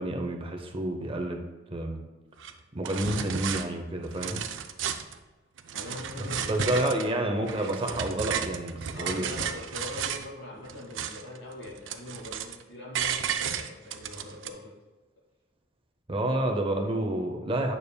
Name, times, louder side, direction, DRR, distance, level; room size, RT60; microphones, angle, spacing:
voice 1, 0.0-1.4 1.7-2.0 2.7-4.4 6.2-9.5 16.1-17.7, right 1 dB, 25° right, 4 dB, 0.7 m, -29 dB
sound 1, 2.4-2.5 2.8-3.6 4.0-5.2 5.6-7.1 7.4-10.3 10.6-11.4 11.6-12.6 12.9-14.5, right 8 dB, 70° right, 0.5 m, -33 dB
voice 2, 5.7-7.2 8.9-14.7, left 2 dB, 65° left, -2 dB, 2.0 m, -42 dB
9.1 x 6.8 x 2.3 m, 1.2 s
head